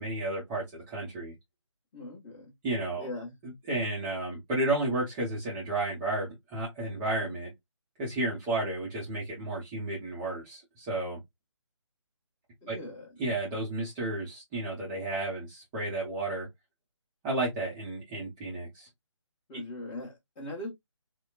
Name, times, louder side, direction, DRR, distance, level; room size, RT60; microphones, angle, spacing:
voice 1, 0.0-1.3 2.6-3.1 3.7-7.5 8.0-11.2 12.7-12.8 13.2-16.5 17.2-18.9, right 2 dB, 15° right, 0.7 m, -32 dB
voice 2, 1.9-2.5 3.0-3.4 12.6-13.1 19.5-20.7, left 1 dB, 15° left, 1.3 m, -40 dB
4.2 x 2.2 x 2.3 m
figure-of-eight pair, 145°, 16 cm